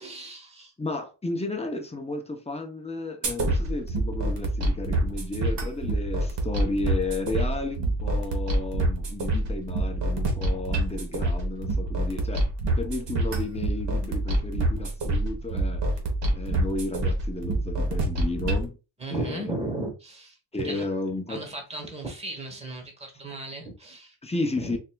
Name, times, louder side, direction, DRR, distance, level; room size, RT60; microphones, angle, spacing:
voice 1, 0.0-0.7 19.0-20.4 20.6-20.8 21.3-24.1 24.6-24.8, right 2 dB, 15° right, 1.2 m, -35 dB
voice 2, 0.8-12.4 12.8-15.8 16.3-18.8 19.1-19.5 20.5-21.5 24.2-24.8, left 2 dB, 15° left, 0.7 m, -33 dB
sound 1, 3.2-18.6, right 1 dB, 65° right, 1.3 m, -27 dB
4.5 x 2.7 x 2.3 m
cardioid pair, 95°, 46 cm